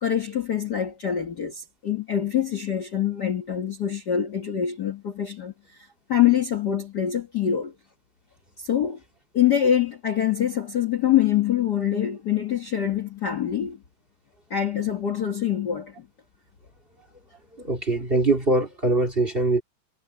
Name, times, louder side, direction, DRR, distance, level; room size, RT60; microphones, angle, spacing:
voice 1, 0.0-5.8 6.1-7.7 8.6-9.0 9.3-13.8 14.5-16.1, left 10 dB, 80° left, 0.9 m, -25 dB
voice 2, 17.6-19.6, right 2 dB, 20° right, 1.8 m, -22 dB
omnidirectional pair, 4.0 m